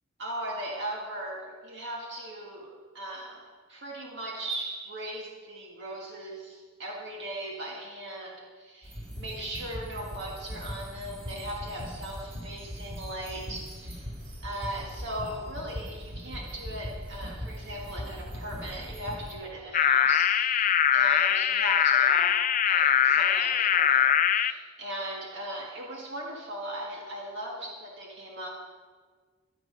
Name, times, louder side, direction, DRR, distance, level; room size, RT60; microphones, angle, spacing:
voice 1, 0.2-14.1 14.4-28.5, right 1 dB, 60° right, -1 dB, 1.7 m, -38 dB
sound 1, 8.8-19.3, equal, 35° right, 3.8 m, -40 dB
sound 2, 19.7-24.5, left 9 dB, 40° left, 0.4 m, -22 dB
13.0 x 11.5 x 5.4 m, 1.5 s
head